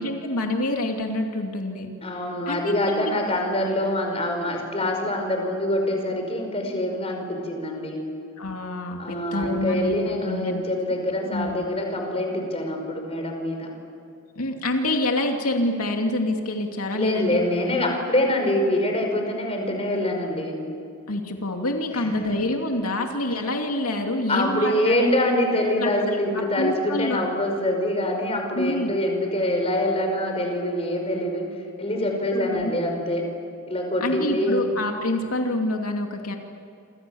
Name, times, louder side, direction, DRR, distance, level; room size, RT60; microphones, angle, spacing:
voice 1, 0.0-1.9 2.5-3.1 8.4-10.6 11.3-11.6 14.4-17.4 21.1-25.1 25.8-26.1 26.6-27.2 28.6-28.9 32.3-32.7 34.0-36.4, left 1 dB, 90° left, 2 dB, 2.8 m, -27 dB
voice 2, 2.0-8.0 9.0-13.7 16.9-20.6 21.9-22.4 24.3-31.5 31.8-33.3 33.7-34.6, left 1 dB, 25° left, 3 dB, 5.4 m, -25 dB
28.0 x 27.0 x 7.2 m, 2.6 s
head